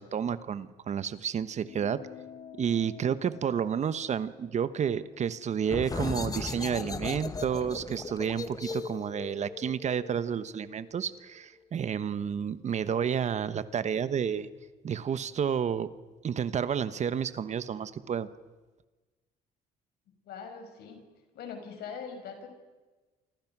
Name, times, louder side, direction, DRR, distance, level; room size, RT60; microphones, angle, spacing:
voice 1, 0.0-2.0 2.6-14.5 14.8-15.9 16.2-18.3, right 8 dB, 45° right, 14 dB, 1.1 m, -30 dB
sound 1, 1.6-6.4, left 9 dB, 55° left, 1.2 m, -51 dB
sound 2, 5.6-11.0, left 4 dB, 20° left, 1.4 m, -37 dB
voice 2, 20.1-21.0 21.3-22.5, left 6 dB, 70° left, 5 dB, 6.2 m, -42 dB
29.0 x 26.0 x 6.1 m, 1.2 s
cardioid pair, 110°, 17 cm